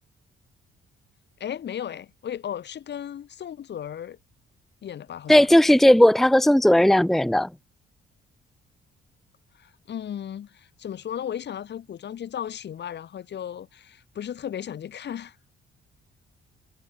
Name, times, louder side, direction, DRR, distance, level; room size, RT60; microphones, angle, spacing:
voice 1, 1.4-4.2 4.8-5.5 9.6-15.4, left 9 dB, 60° left, 2.7 m, -35 dB
voice 2, 5.3-7.5, left 1 dB, ahead, 0.8 m, -16 dB
cardioid pair, 90°, 20 cm